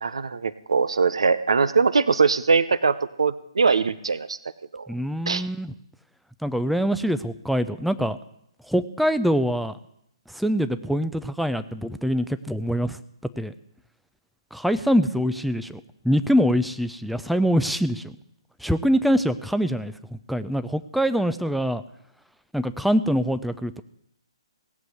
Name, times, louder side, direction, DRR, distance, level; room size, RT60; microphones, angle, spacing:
voice 1, 0.0-4.4 4.7-4.8 5.3-5.4, right 5 dB, 65° right, 15 dB, 0.9 m, -21 dB
voice 2, 4.9-5.7 6.4-8.2 8.7-9.8 10.3-13.0 13.4-13.5 14.5-18.1 18.6-21.8 22.5-23.8, equal, ahead, 11 dB, 0.5 m, -24 dB
18.0 x 7.7 x 8.2 m, 0.75 s
figure-of-eight pair, 130°, 3 cm